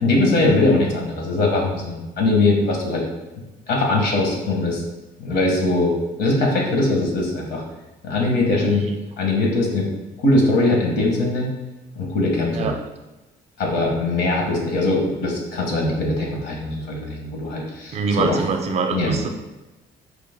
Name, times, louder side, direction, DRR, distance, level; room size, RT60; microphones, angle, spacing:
voice 1, 0.0-3.0 3.7-4.8 5.2-7.6 8.0-8.9 9.2-9.9 10.2-11.5 11.9-12.7 13.6-18.4 18.9-19.2, left 2 dB, 75° left, 0 dB, 1.1 m, -21 dB
voice 2, 8.6-8.9 12.5-12.8 17.9-19.3, right 4 dB, 40° right, 4 dB, 0.5 m, -24 dB
4.8 x 2.0 x 3.5 m, 1.1 s
cardioid pair, 110°, 17 cm